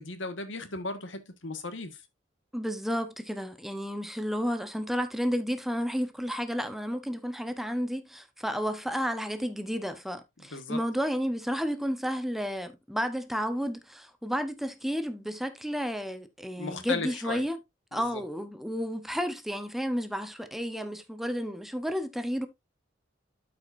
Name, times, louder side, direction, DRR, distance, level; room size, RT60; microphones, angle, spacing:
voice 1, 0.0-2.0 10.5-10.8 16.5-17.4 17.9-18.2, left 3 dB, 85° left, 1.5 m, -36 dB
voice 2, 2.5-17.6 17.9-22.5, equal, ahead, 0.9 m, -32 dB
13.0 x 5.0 x 2.6 m
head